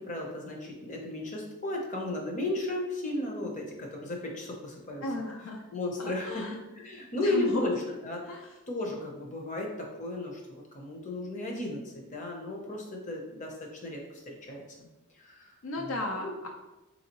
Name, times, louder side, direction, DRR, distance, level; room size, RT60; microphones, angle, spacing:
voice 1, 0.0-5.0 5.7-7.8 8.0-8.2 8.7-13.5 13.8-14.6 15.2-15.5 15.8-16.3, left 2 dB, 35° left, 0 dB, 0.8 m, -34 dB
voice 2, 5.0-5.6 6.0-6.6 7.1-7.7 8.2-8.6 15.6-16.5, left 1 dB, 70° left, 2 dB, 0.5 m, -34 dB
4.1 x 3.6 x 2.9 m, 1.0 s
head